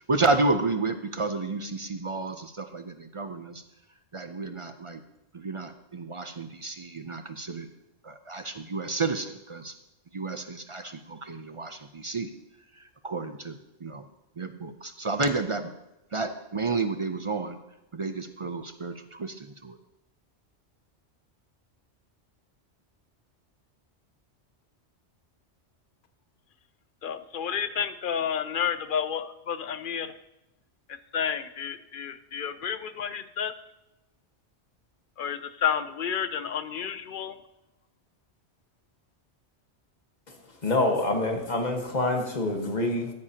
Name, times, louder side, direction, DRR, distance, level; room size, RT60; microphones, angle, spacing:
voice 1, 0.1-3.6 4.1-5.0 5.3-7.7 8.0-9.7 10.1-12.3 13.0-13.6 13.8-14.0 14.4-15.7 16.1-17.6 17.9-19.7, right 3 dB, 40° right, 8 dB, 0.5 m, -31 dB
voice 2, 27.0-30.1 30.9-33.5 35.2-37.4, left 8 dB, 55° left, 12 dB, 0.7 m, -30 dB
voice 3, 40.6-43.1, left 2 dB, 40° left, 3 dB, 1.5 m, -26 dB
14.0 x 9.8 x 2.9 m, 0.96 s
omnidirectional pair, 1.2 m